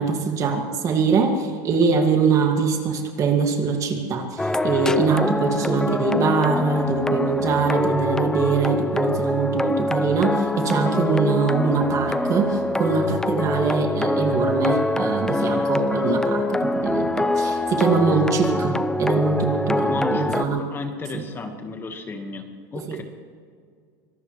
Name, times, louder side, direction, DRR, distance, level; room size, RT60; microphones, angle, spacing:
voice 1, 0.0-20.6 21.1-21.2 22.9-23.0, right 5 dB, 35° right, 3 dB, 2.2 m, -23 dB
sound 1, 4.4-20.4, left 2 dB, 5° left, 0.6 m, -24 dB
voice 2, 19.9-22.5 22.7-23.0, left 3 dB, 20° left, 5 dB, 1.6 m, -33 dB
24.5 x 17.5 x 3.3 m, 2.1 s
supercardioid pair, 130°, 10 cm